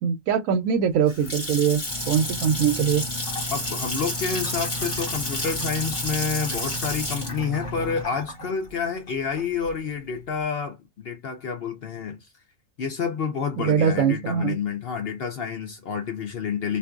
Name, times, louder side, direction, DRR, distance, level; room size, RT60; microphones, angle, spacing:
voice 1, 0.0-3.0 13.6-14.5, right 7 dB, 75° right, 0.9 m, -22 dB
Water tap faucet / Sink (filling or washing) / Splash splatter, 0.8-9.7, left 1 dB, 45° left, 1.6 m, -31 dB
Engine, 1.9-8.0, left 2 dB, 25° right, 0.9 m, -36 dB
voice 2, 3.5-12.3 12.8-16.8, left 6 dB, 60° left, 0.6 m, -29 dB
2.5 x 2.5 x 2.3 m
omnidirectional pair, 1.4 m